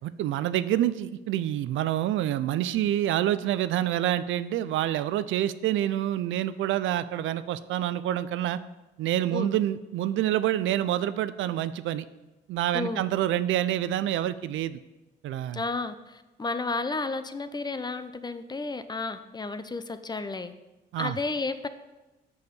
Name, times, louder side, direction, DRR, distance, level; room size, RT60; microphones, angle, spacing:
voice 1, 0.0-8.6 9.0-12.0 12.5-14.8 15.2-15.6 20.9-21.1, right 12 dB, 75° right, 14 dB, 0.4 m, -27 dB
voice 2, 12.7-13.0 15.5-20.5 21.0-21.7, left 3 dB, 20° left, 11 dB, 0.5 m, -32 dB
6.8 x 6.4 x 5.3 m, 1.1 s
cardioid pair, 90°, 20 cm